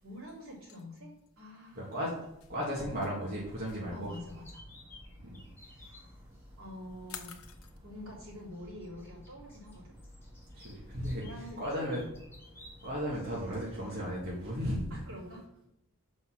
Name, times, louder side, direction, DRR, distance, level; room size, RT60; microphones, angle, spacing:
voice 1, 0.0-1.1 1.4-1.9 3.9-4.6 5.6-6.0 6.6-7.4 7.8-10.0 11.2-12.0 14.9-15.4, left 1 dB, 80° right, -5 dB, 3.2 m, -46 dB
sound 1, 0.7-7.8, left 8 dB, 85° left, 0.8 m, -51 dB
voice 2, 1.8-2.1 2.5-4.1 5.2-5.4 10.5-11.2 11.6-12.0 12.8-15.0, equal, 45° right, -5 dB, 1.8 m, -35 dB
sound 2, 3.3-14.7, equal, 10° right, 1.5 m, -54 dB
sound 3, 4.1-6.0 7.5-7.6 8.8-12.9, left 2 dB, 10° left, 2.3 m, -56 dB
6.0 x 5.3 x 6.3 m, 0.80 s
head